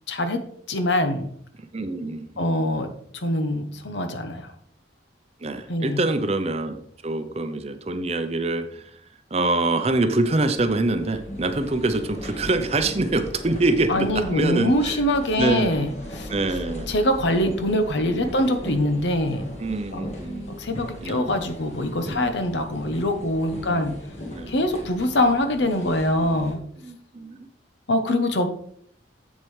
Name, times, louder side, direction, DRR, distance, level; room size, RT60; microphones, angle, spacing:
voice 1, 0.1-1.3 2.4-4.5 5.7-6.1 13.9-16.3 16.9-19.4 19.9-20.0 20.6-23.9 24.5-26.6 27.9-28.5, left 1 dB, 70° left, 8 dB, 0.9 m, -24 dB
voice 2, 1.6-2.6 5.4-9.0 9.3-15.0 15.4-15.7 16.3-16.9 18.1-18.4 19.6-20.6 21.0-21.3 22.0-22.7 23.6-24.0 24.3-24.5 26.8-27.4, right 2 dB, 35° right, 8 dB, 0.6 m, -25 dB
sound 1, 9.9-26.5, equal, 35° left, 1.5 m, -38 dB
7.5 x 7.5 x 3.3 m, 0.65 s
head